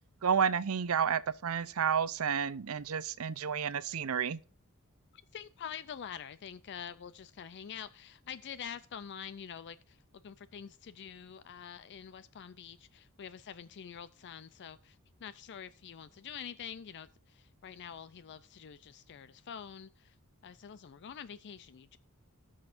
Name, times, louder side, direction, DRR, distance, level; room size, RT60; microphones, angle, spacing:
voice 1, 0.2-4.4, right 7 dB, 70° right, 0.6 m, -31 dB
voice 2, 5.3-20.2 20.4-22.0, left 8 dB, 55° left, 0.4 m, -46 dB
18.5 x 6.4 x 2.5 m
head